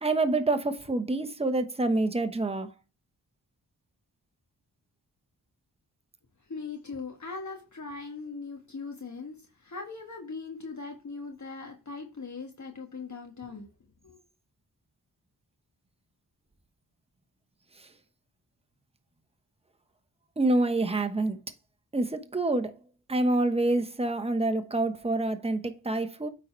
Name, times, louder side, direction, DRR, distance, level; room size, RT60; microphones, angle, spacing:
voice 1, 0.0-2.7 17.8-17.9 20.4-21.4 21.9-22.7 23.1-26.3, right 2 dB, 15° right, 1.1 m, -27 dB
voice 2, 6.5-13.7 14.0-14.2, left 4 dB, 45° left, 1.5 m, -40 dB
9.0 x 4.0 x 4.4 m
cardioid pair, 45°, 40 cm